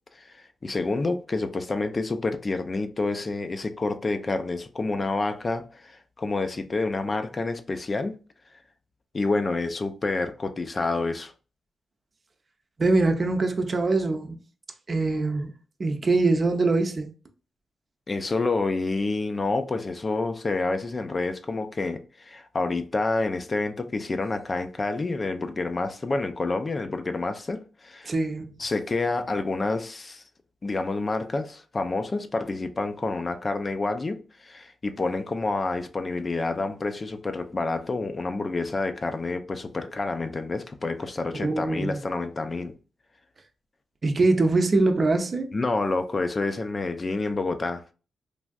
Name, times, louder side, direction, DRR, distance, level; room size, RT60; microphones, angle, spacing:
voice 1, 0.1-8.2 8.5-8.6 9.1-11.3 18.1-28.1 28.6-30.2 30.6-42.7 45.5-47.8, left 3 dB, 40° left, 0.4 m, -28 dB
voice 2, 12.8-14.4 14.9-15.5 15.8-17.1 28.0-28.5 41.3-42.0 44.0-45.5, right 3 dB, 50° right, 0.6 m, -23 dB
3.3 x 2.5 x 2.3 m
supercardioid pair, 45°, 0 cm